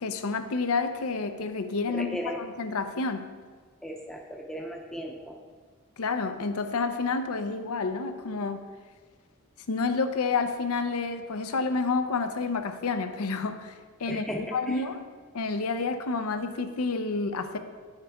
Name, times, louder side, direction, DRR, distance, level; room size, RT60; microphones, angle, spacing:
voice 1, 0.0-3.2 6.0-8.6 9.7-13.7 14.0-15.0 15.3-17.6, left 4 dB, 85° left, 8 dB, 0.6 m, -29 dB
voice 2, 1.9-2.5 3.8-5.4 14.0-14.9, equal, ahead, 1 dB, 0.6 m, -36 dB
9.2 x 6.5 x 3.5 m, 1.5 s
head